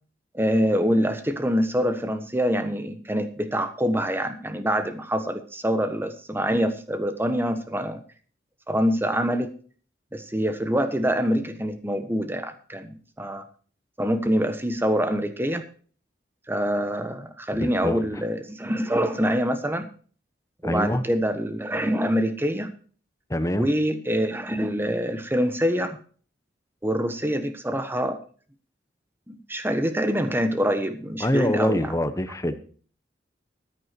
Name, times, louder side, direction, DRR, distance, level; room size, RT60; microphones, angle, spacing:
voice 1, 0.3-8.0 8.7-9.5 10.1-13.4 14.0-15.6 16.5-19.9 20.6-22.7 23.5-26.0 26.8-28.2 29.3-31.9, equal, 15° right, 9 dB, 1.2 m, -25 dB
voice 2, 17.5-18.0 20.6-21.0 23.3-23.7 31.2-32.6, left 1 dB, 20° left, 10 dB, 1.0 m, -25 dB
14.5 x 9.7 x 4.5 m, 0.43 s
head